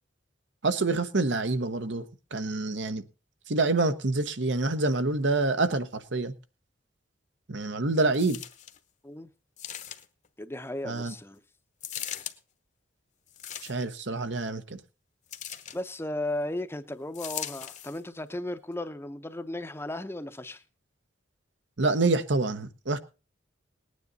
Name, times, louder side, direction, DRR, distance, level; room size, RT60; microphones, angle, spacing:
voice 1, 0.6-2.1 2.3-3.0 3.5-6.3 7.5-8.4 10.8-11.1 13.6-14.8 21.8-23.0, right 3 dB, 65° right, 1.0 m, -27 dB
sound 1, 8.1-8.8 9.6-10.3 11.8-12.4 13.3-14.0 15.3-15.8 17.1-18.0 18.7-18.8, left 10 dB, 40° left, 0.9 m, -39 dB
voice 2, 10.4-11.4 15.7-20.6, left 1 dB, 15° left, 0.7 m, -35 dB
19.0 x 9.6 x 4.0 m
head